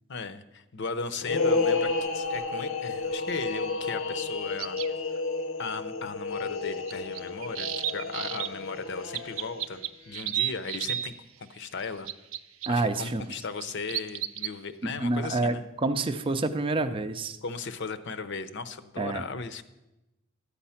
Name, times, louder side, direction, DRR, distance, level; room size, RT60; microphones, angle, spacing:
voice 1, 0.1-4.8 5.1-5.2 5.6-12.1 12.7-15.6 17.4-19.6, left 4 dB, 60° left, 12 dB, 0.7 m, -37 dB
sound 1, 1.2-9.8, left 3 dB, 85° left, 1.0 m, -31 dB
sound 2, 4.6-4.9 6.9-8.5 9.1-11.1 11.8-12.7 13.3-14.5, right 12 dB, 85° right, 0.5 m, -32 dB
voice 2, 12.7-13.2 14.8-17.4 19.0-19.2, right 2 dB, 25° right, 7 dB, 0.5 m, -28 dB
13.0 x 8.5 x 5.7 m, 0.98 s
head